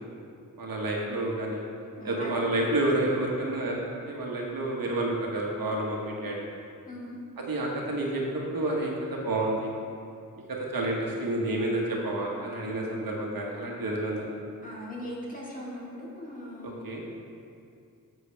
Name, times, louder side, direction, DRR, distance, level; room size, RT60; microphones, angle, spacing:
voice 1, 0.6-1.6 2.0-6.4 7.4-8.2 8.5-9.8 10.5-14.3 16.6-17.0, right 1 dB, 80° right, -2 dB, 1.5 m, -29 dB
voice 2, 2.0-2.6 6.9-7.2 12.6-13.0 14.6-16.8, equal, 25° left, -5 dB, 2.0 m, -40 dB
10.5 x 7.7 x 3.4 m, 2.4 s
wide cardioid pair, 120°, 34 cm